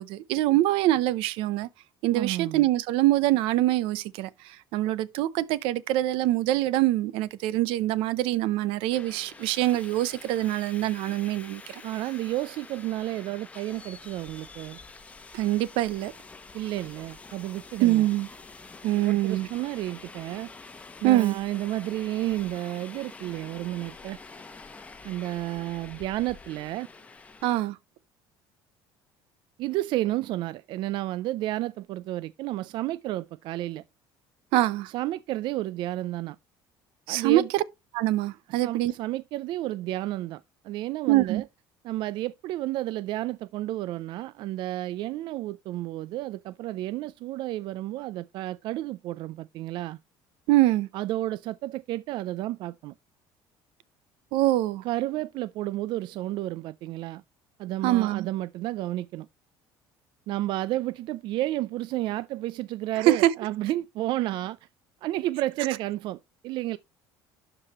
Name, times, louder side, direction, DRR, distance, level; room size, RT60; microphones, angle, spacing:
voice 1, 0.0-1.7 2.0-11.8 15.3-16.1 17.8-18.3 18.8-19.5 21.0-21.4 27.4-27.8 34.5-34.9 37.1-37.6 37.9-38.9 41.1-41.4 50.5-50.9 54.3-54.8 57.8-58.3 63.0-63.3, right 15 dB, 80° right, 0.7 m, -24 dB
voice 2, 2.1-2.6 11.8-14.8 16.5-18.0 19.1-20.5 21.0-24.2 25.0-26.9 29.6-33.8 34.9-36.4 37.1-37.5 38.5-41.5 41.8-50.0 50.9-52.9 54.8-57.2 57.6-59.3 60.3-64.7 65.0-66.8, right 15 dB, 60° right, 0.4 m, -31 dB
Subway metro underground, 8.9-27.6, left 3 dB, 15° left, 0.9 m, -47 dB
12.0 x 4.8 x 3.0 m
cardioid pair, 145°, 9 cm